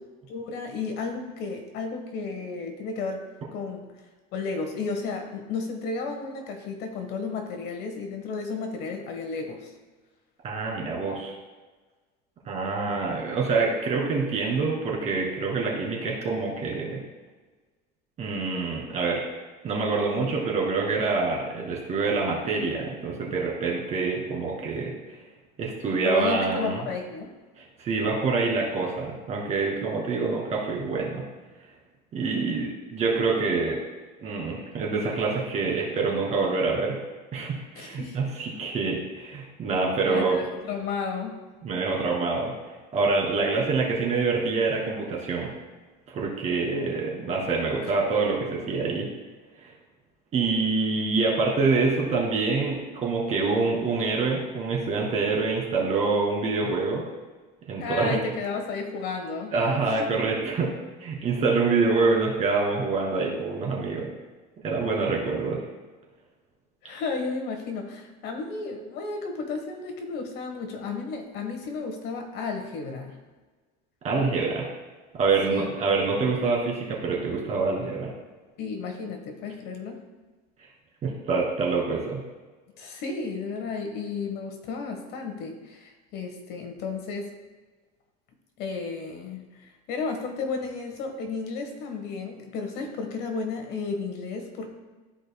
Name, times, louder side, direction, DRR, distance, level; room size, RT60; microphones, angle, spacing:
voice 1, 0.3-3.2 3.5-3.9 4.3-9.7 26.0-27.3 37.8-38.2 40.0-41.4 57.8-59.5 59.8-60.1 60.5-60.7 66.8-73.2 75.5-75.7 78.6-80.0 82.8-87.3 88.6-94.7, left 4 dB, 55° left, 4 dB, 1.3 m, -33 dB
voice 2, 10.4-11.3 12.5-17.0 18.2-19.2 19.6-25.2 25.6-26.8 27.6-31.2 32.1-33.8 34.2-37.0 37.3-40.4 41.6-42.5 42.9-45.5 46.1-49.1 49.6-49.7 50.3-57.0 57.7-58.2 59.5-60.7 61.0-64.1 64.6-65.6 74.0-74.7 75.1-78.1 81.0-82.2, right 4 dB, 35° right, -2 dB, 2.2 m, -26 dB
14.0 x 4.9 x 2.2 m, 1.3 s
cardioid pair, 140°, 20 cm